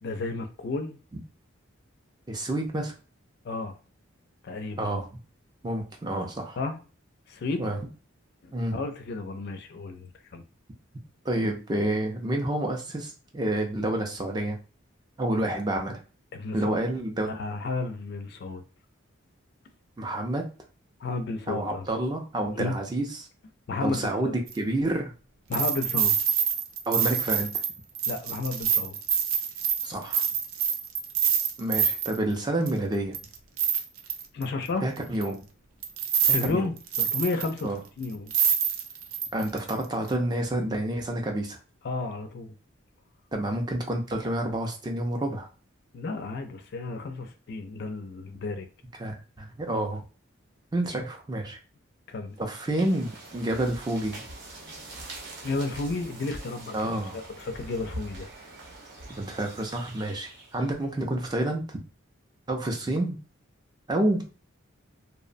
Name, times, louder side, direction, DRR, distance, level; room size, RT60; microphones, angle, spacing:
voice 1, 0.0-1.0 3.4-3.7 4.4-4.9 6.6-6.8 7.3-7.7 8.4-10.4 16.3-16.8 17.2-18.6 21.0-21.8 22.6-22.7 23.7-24.4 25.5-26.2 28.1-29.0 34.3-34.9 36.3-38.3 41.8-42.5 45.9-48.7 52.1-52.4 55.4-58.3, left 3 dB, 50° left, 0.3 m, -32 dB
voice 2, 2.3-2.9 4.8-5.1 5.6-6.6 7.6-7.8 8.5-8.8 11.2-14.6 15.2-16.0 16.5-17.3 20.0-20.5 21.5-23.2 23.8-25.1 26.9-27.5 29.8-30.2 31.6-33.2 34.8-35.4 36.3-36.7 37.6-37.8 39.3-41.6 43.3-45.5 49.0-50.0 50.7-51.6 52.4-54.2 56.7-57.2 59.1-61.8 62.5-63.2 63.9-64.3, right 1 dB, 20° right, 0.4 m, -29 dB
sound 1, 24.5-24.6 25.5-32.2 32.7-32.8 33.1-34.4 35.2-35.3 35.8-36.5 36.8-37.6 38.0-38.1 38.3-39.7 40.1-40.2, right 8 dB, 85° right, 0.4 m, -26 dB
sound 2, 52.4-60.8, right 2 dB, 55° right, 0.7 m, -43 dB
2.7 x 2.0 x 2.5 m
head